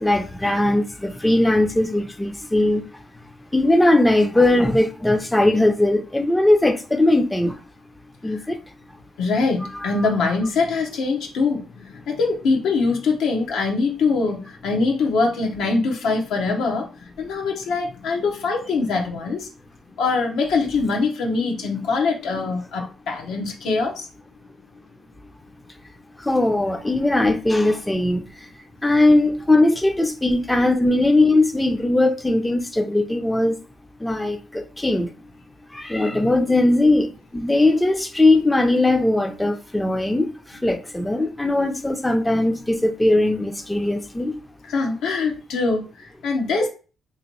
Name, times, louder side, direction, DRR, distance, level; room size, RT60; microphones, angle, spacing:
voice 1, 0.0-2.8 3.5-7.5 8.2-8.5 9.7-10.1 26.3-28.2 28.8-33.6 34.0-35.1 35.7-40.3 40.6-44.3, left 2 dB, 10° left, 0.5 m, -19 dB
voice 2, 9.2-19.5 20.0-24.1 36.1-36.3 44.7-46.7, left 4 dB, 85° left, 0.9 m, -23 dB
2.9 x 2.9 x 3.0 m
cardioid pair, 90°, 0 cm